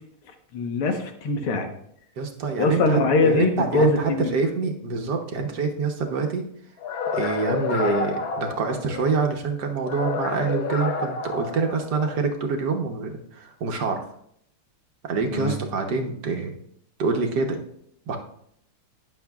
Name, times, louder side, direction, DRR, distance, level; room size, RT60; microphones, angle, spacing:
voice 1, 0.5-1.7 2.6-4.3 15.3-15.6, left 3 dB, 80° left, 4 dB, 2.1 m, -22 dB
voice 2, 2.2-6.4 7.1-14.0 15.0-16.5 17.0-17.6 18.1-18.2, right 4 dB, 55° right, 3 dB, 1.5 m, -26 dB
sound 1, 6.8-9.2 9.8-12.2, left 5 dB, 60° left, 1.0 m, -30 dB
19.0 x 7.0 x 2.4 m, 0.70 s
omnidirectional pair, 2.4 m